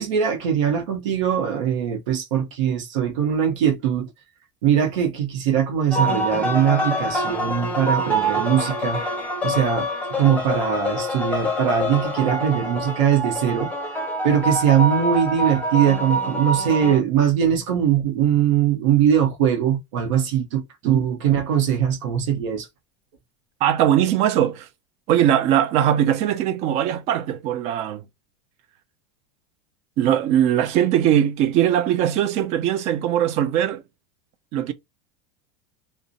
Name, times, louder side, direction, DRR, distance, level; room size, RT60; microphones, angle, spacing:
voice 1, 0.0-4.1 4.6-9.0 9.4-9.9 10.2-13.7 14.2-22.7, right 9 dB, 85° right, 0.8 m, -21 dB
sound 1, 5.9-17.0, right 1 dB, 10° left, 0.7 m, -25 dB
voice 2, 23.6-24.7 25.1-28.0 30.0-33.8 34.5-34.7, right 10 dB, 45° right, 0.4 m, -20 dB
2.5 x 2.1 x 2.5 m
supercardioid pair, 140°, 16 cm